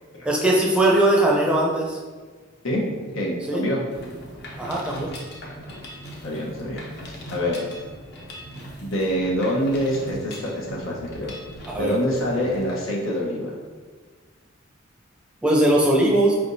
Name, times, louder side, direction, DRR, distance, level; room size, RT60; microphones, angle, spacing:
voice 1, 0.2-2.0 3.5-3.6 4.6-5.1 11.7-11.9 15.4-16.3, right 1 dB, 5° right, -4 dB, 0.5 m, -19 dB
voice 2, 3.1-3.8 6.2-6.8 7.3-7.6 8.8-11.3 11.8-13.5, equal, 90° left, -3 dB, 1.0 m, -25 dB
Mechanisms, 3.9-12.7, equal, 55° left, 0.8 m, -39 dB
5.0 x 3.4 x 2.6 m, 1.5 s
head